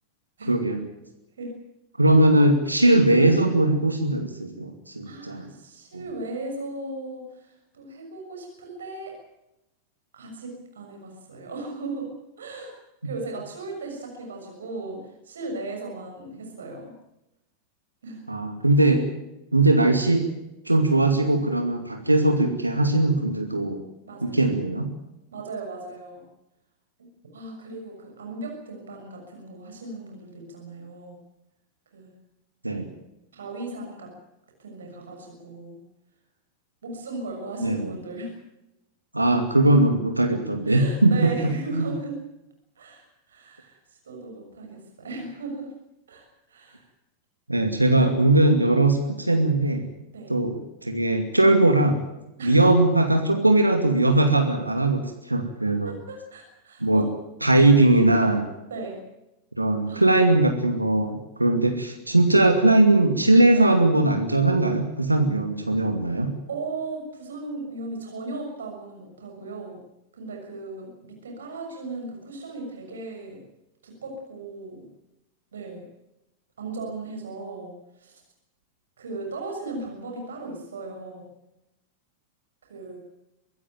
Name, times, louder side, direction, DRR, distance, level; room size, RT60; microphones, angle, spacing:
voice 1, 0.5-0.8 2.0-5.5 5.9-6.0 18.3-19.0 19.5-20.3 20.7-23.8 24.2-24.9 32.6-32.9 37.6-37.9 39.1-41.3 41.7-41.9 47.5-49.8 50.3-52.0 52.4-55.9 56.8-57.1 57.4-58.5 59.6-66.3, right 2 dB, 85° right, 5 dB, 2.5 m, -20 dB
voice 2, 5.0-9.1 10.1-12.1 12.4-12.7 13.0-16.9 18.0-18.3 24.1-24.4 25.3-26.3 27.0-27.1 27.3-31.2 31.9-32.2 33.3-34.1 34.6-35.8 36.8-38.3 40.6-42.1 42.8-43.8 44.0-45.7 46.1-46.8 50.1-50.4 52.4-52.6 55.8-57.1 58.7-59.0 59.9-60.1 63.5-63.8 66.5-69.8 70.1-73.4 73.8-74.8 75.5-75.8 76.6-78.2 79.0-81.3 82.7-83.0, right 2 dB, 65° right, 2 dB, 6.6 m, -37 dB
24.0 x 15.0 x 9.1 m, 0.91 s
figure-of-eight pair, 90°, 0 cm